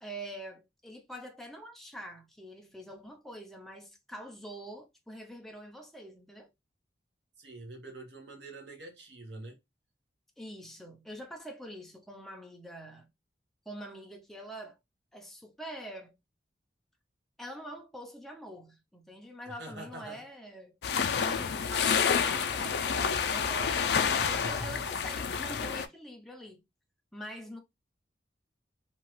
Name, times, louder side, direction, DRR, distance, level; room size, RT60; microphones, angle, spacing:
voice 1, 0.0-6.5 10.4-13.1 13.7-14.8 15.1-16.2 17.4-20.8 21.2-26.6 27.1-27.6, equal, ahead, 0.4 m, -45 dB
voice 2, 7.4-9.6 19.4-20.2 21.3-21.6 24.1-24.8, right 2 dB, 70° right, 1.1 m, -45 dB
sound 1, 20.8-25.9, left 6 dB, 65° left, 0.3 m, -29 dB
2.9 x 2.3 x 3.0 m
head